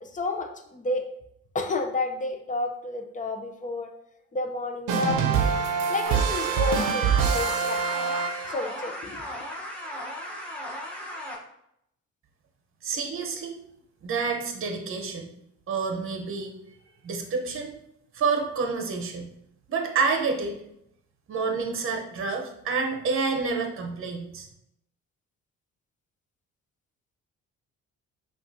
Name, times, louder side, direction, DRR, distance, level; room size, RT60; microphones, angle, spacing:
voice 1, 0.0-1.1 1.5-3.9 4.3-5.5 5.9-7.8 8.5-9.2, left 2 dB, 25° left, 4 dB, 0.6 m, -31 dB
sound 1, 4.9-8.8, right 6 dB, 90° right, 0.6 m, -25 dB
sound 2, 6.1-11.4, left 1 dB, 5° left, 1.0 m, -36 dB
voice 2, 12.8-13.6 14.0-15.3 15.7-16.5 17.0-17.7 18.1-19.3 19.7-20.5 21.3-24.5, right 4 dB, 45° right, 3 dB, 0.8 m, -28 dB
5.6 x 2.5 x 2.7 m, 0.76 s
cardioid pair, 90°, 30 cm